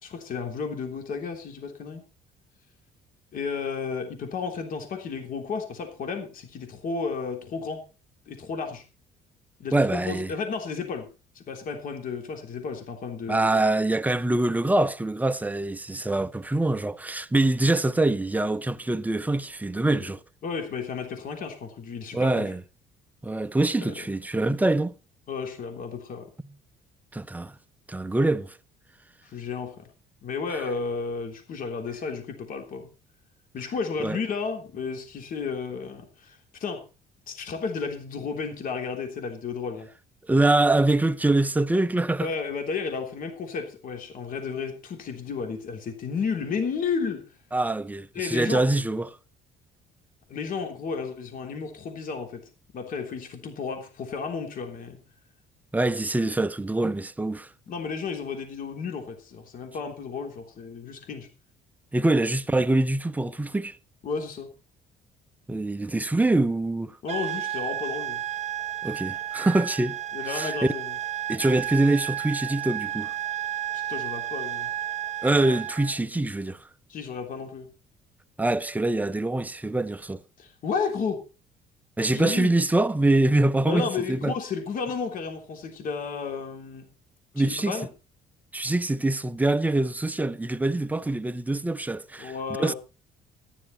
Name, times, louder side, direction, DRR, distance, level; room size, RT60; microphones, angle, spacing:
voice 1, 0.0-2.0 3.3-7.8 8.3-8.8 9.6-11.1 11.3-13.5 19.9-20.0 20.4-22.4 23.8-23.9 25.3-26.3 29.2-29.9 30.2-32.9 33.5-36.8 37.3-39.9 42.2-47.3 48.1-48.6 50.3-55.0 57.7-61.3 64.0-64.5 67.0-68.2 70.1-70.9 73.7-74.7 76.9-77.7 80.4-81.2 82.1-82.5 83.6-86.9 87.4-87.9 92.2-92.8, left 5 dB, 55° left, 3.3 m, -32 dB
voice 2, 9.7-10.3 13.3-20.2 22.1-22.6 23.2-24.9 27.1-27.6 27.9-28.6 30.5-30.6 34.0-34.2 40.3-42.3 47.5-49.2 55.7-57.5 61.9-63.8 65.5-67.0 68.8-70.0 70.2-70.5 71.3-73.1 75.2-76.6 78.4-80.2 82.0-84.3 87.3-87.8 88.5-92.3 92.6-92.7, right 2 dB, 10° right, 0.7 m, -24 dB
sound 1, 67.1-76.0, right 11 dB, 40° right, 1.2 m, -32 dB
14.0 x 11.0 x 4.3 m
cardioid pair, 110°, 17 cm